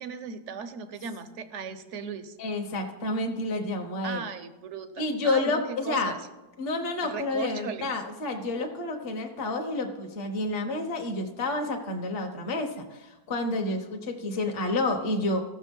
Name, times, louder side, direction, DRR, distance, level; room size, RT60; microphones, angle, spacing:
voice 1, 0.0-2.3 4.0-6.2 7.0-7.9, right 6 dB, 55° right, 11 dB, 1.0 m, -37 dB
voice 2, 2.4-4.2 5.0-6.1 6.6-15.4, left 2 dB, 40° left, 3 dB, 1.2 m, -29 dB
15.5 x 6.6 x 5.3 m, 1.1 s
omnidirectional pair, 1.7 m